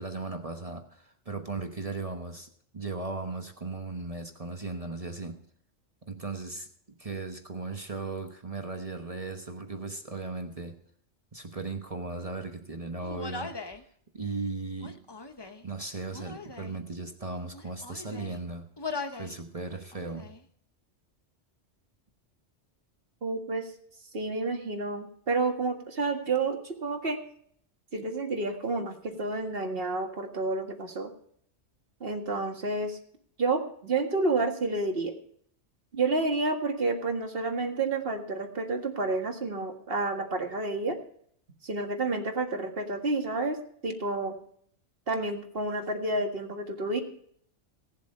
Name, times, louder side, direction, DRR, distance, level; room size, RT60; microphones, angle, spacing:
voice 1, 0.0-2.5 2.7-5.4 6.1-10.8 11.3-13.6 14.1-15.0 15.6-18.7 19.1-20.4, right 3 dB, 30° right, 6 dB, 1.1 m, -37 dB
Human voice, 13.0-13.8 14.7-15.7 16.1-16.8 17.4-18.4 18.8-19.4 19.7-20.4, left 3 dB, 25° left, 0.9 m, -40 dB
voice 2, 23.2-23.7 24.1-27.2 27.9-31.1 32.0-33.0 33.4-35.1 35.9-41.0 41.6-43.6 43.8-44.3 45.1-47.0, right 3 dB, 55° right, 3 dB, 1.9 m, -30 dB
17.5 x 7.4 x 5.4 m, 0.62 s
omnidirectional pair, 1.2 m